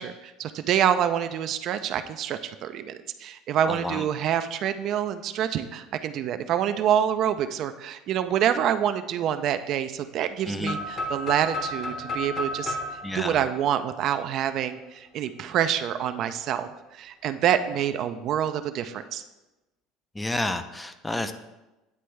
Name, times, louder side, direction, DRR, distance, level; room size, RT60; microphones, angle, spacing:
voice 1, 0.0-12.8 13.1-19.2, right 9 dB, 55° right, 10 dB, 0.4 m, -27 dB
voice 2, 3.7-4.0 10.5-10.8 13.0-13.4 20.2-21.3, left 1 dB, 10° left, 10 dB, 0.4 m, -30 dB
sound 1, 10.6-14.5, left 1 dB, 45° left, 1.2 m, -33 dB
9.4 x 3.3 x 3.2 m, 1.0 s
supercardioid pair, 100°, 0 cm